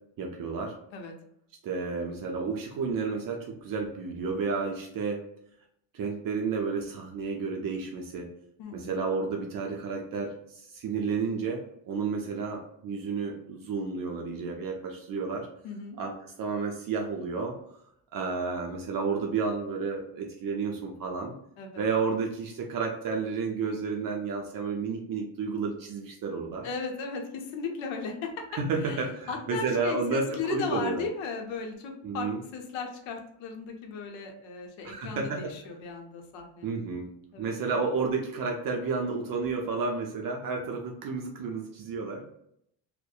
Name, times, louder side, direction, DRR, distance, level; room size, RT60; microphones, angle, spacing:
voice 1, 0.2-0.7 1.6-5.2 5.9-8.3 8.7-15.5 16.0-17.8 18.1-21.3 21.8-26.7 28.5-31.0 32.0-32.4 34.8-35.5 36.6-37.1 37.4-42.2, right 4 dB, 50° right, 1 dB, 0.5 m, -31 dB
voice 2, 8.6-8.9 15.6-16.0 21.6-21.8 26.6-36.7 37.3-37.9, left 4 dB, 75° left, 3 dB, 0.7 m, -36 dB
2.5 x 2.1 x 2.3 m, 0.73 s
cardioid pair, 105°, 45 cm